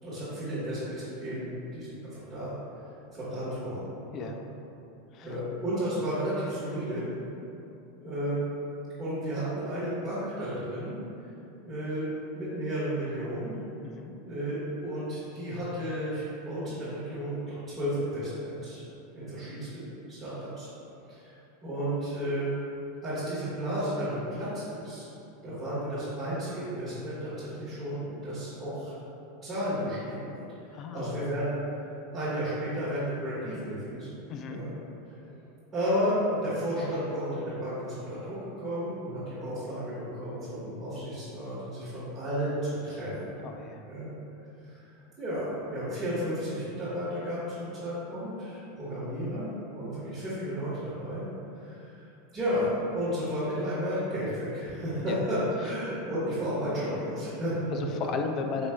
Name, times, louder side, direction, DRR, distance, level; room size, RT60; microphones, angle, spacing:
voice 1, 0.0-2.6 3.1-4.3 5.2-7.1 8.0-8.4 9.0-11.0 11.6-12.1 12.3-13.5 14.2-18.8 19.1-20.7 21.0-21.3 21.6-22.5 23.0-25.1 25.4-28.9 29.4-31.5 32.1-34.2 34.5-34.7 35.0-35.4 35.7-43.3 43.8-44.1 44.6-44.9 45.2-51.2 51.5-52.0 52.3-57.8, equal, 15° right, -15 dB, 1.4 m, -33 dB
voice 2, 13.8-14.1 30.7-31.3 34.3-34.6 43.4-43.9 55.0-55.2 57.7-58.7, left 5 dB, 40° left, 5 dB, 0.3 m, -35 dB
4.6 x 3.0 x 2.2 m, 2.7 s
supercardioid pair, 125°, 0 cm